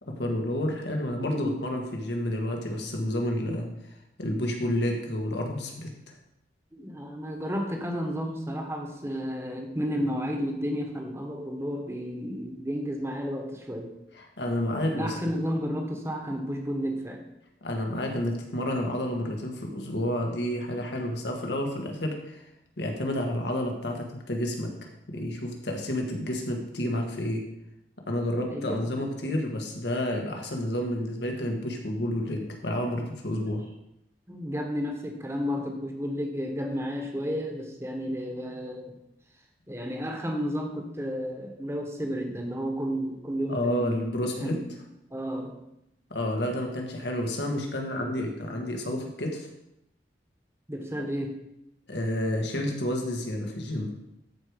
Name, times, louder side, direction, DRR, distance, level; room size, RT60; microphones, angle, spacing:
voice 1, 0.0-3.7 4.2-6.1 14.1-15.2 17.6-22.5 22.8-24.7 25.1-27.4 28.1-33.6 43.5-44.6 46.1-49.5 51.0-51.1 51.9-53.9, left 1 dB, 80° left, 2 dB, 1.9 m, -30 dB
voice 2, 1.3-1.6 6.7-13.9 14.9-17.2 28.5-28.9 29.2-29.3 34.3-39.0 39.7-44.0 44.4-44.7 45.1-45.6 48.2-48.3 50.7-51.3, equal, 15° right, 3 dB, 1.3 m, -32 dB
13.0 x 5.0 x 5.2 m, 0.84 s
head